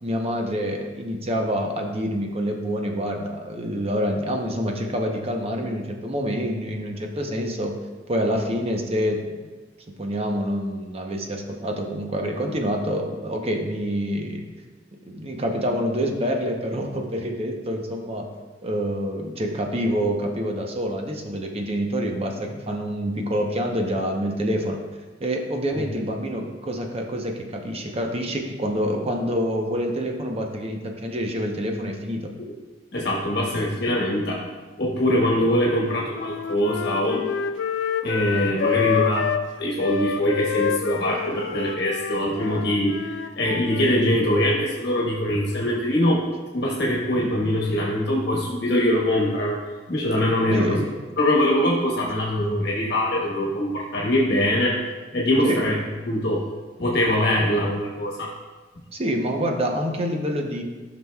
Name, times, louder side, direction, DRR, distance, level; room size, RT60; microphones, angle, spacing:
voice 1, 0.0-7.8 8.1-9.4 9.9-14.4 15.1-18.3 18.6-24.8 25.2-32.3 50.5-50.9 55.4-55.6 58.9-60.6, equal, 35° right, 2 dB, 0.8 m, -27 dB
voice 2, 32.9-34.4 34.8-37.2 38.0-39.3 39.6-43.0 43.4-46.2 46.5-49.6 49.9-50.8 51.2-54.8 55.1-55.7 56.0-56.4 56.8-58.3, left 1 dB, 65° left, -3 dB, 1.3 m, -23 dB
Wind instrument woodwind instrument, 35.6-39.5 39.8-44.1, left 8 dB, 80° left, 0.4 m, -28 dB
13.0 x 6.0 x 2.3 m, 1.3 s
head